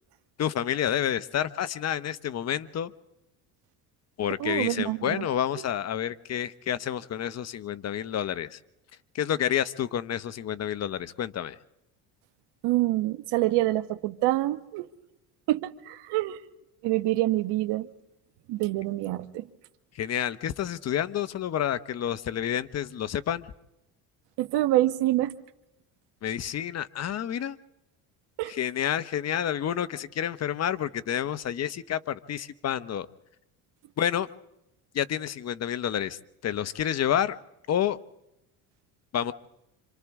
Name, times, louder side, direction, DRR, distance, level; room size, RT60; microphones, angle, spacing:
voice 1, 0.4-2.9 4.2-8.6 9.1-11.6 19.9-23.5 26.2-27.6 28.5-33.1 34.0-34.3 34.9-37.4 37.7-38.0 39.1-39.3, left 10 dB, 40° left, 13 dB, 0.9 m, -29 dB
voice 2, 4.4-5.3 12.6-14.9 15.5-16.4 16.8-17.9 18.5-19.5 24.4-25.3 28.4-28.5, right 16 dB, 75° right, 10 dB, 1.3 m, -26 dB
27.5 x 26.5 x 3.6 m, 0.91 s
cardioid pair, 115°, 41 cm